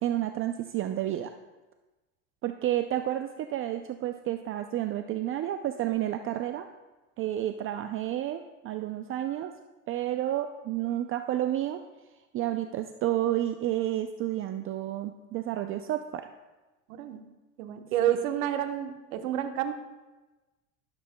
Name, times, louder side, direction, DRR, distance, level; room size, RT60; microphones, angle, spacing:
voice 1, 0.0-1.3 2.4-6.7 7.2-9.5 9.9-11.8 12.3-16.3, right 12 dB, 35° right, 7 dB, 0.4 m, -30 dB
voice 2, 16.9-17.2 17.6-19.7, right 11 dB, 75° right, 7 dB, 1.2 m, -29 dB
12.5 x 12.0 x 2.2 m, 1.1 s
supercardioid pair, 115°, 41 cm